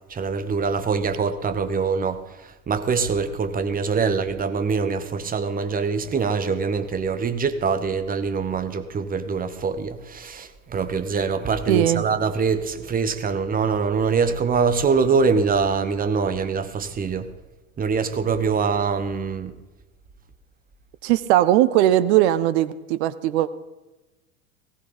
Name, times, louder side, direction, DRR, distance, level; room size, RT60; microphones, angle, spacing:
voice 1, 0.1-17.3 17.8-19.5, right 5 dB, 20° right, 1.2 m, -24 dB
voice 2, 11.7-12.0 21.0-23.5, right 13 dB, 50° right, 0.7 m, -19 dB
18.5 x 16.5 x 4.0 m
figure-of-eight pair, 75°, 42 cm